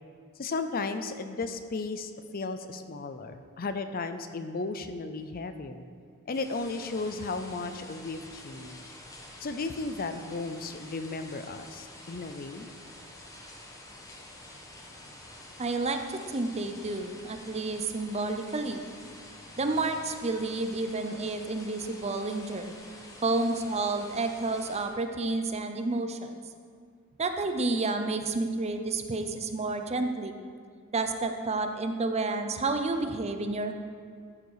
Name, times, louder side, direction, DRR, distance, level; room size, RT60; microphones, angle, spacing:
voice 1, 0.4-5.8 6.3-8.9 9.4-12.7, left 3 dB, 40° left, 9 dB, 0.6 m, -35 dB
sound 1, 6.3-24.9, left 1 dB, 15° left, 1.3 m, -48 dB
voice 2, 15.6-18.8 19.6-22.7 23.2-26.2 27.2-30.4 30.9-33.7, right 3 dB, 30° right, 6 dB, 0.6 m, -30 dB
14.0 x 6.8 x 4.9 m, 2.2 s
head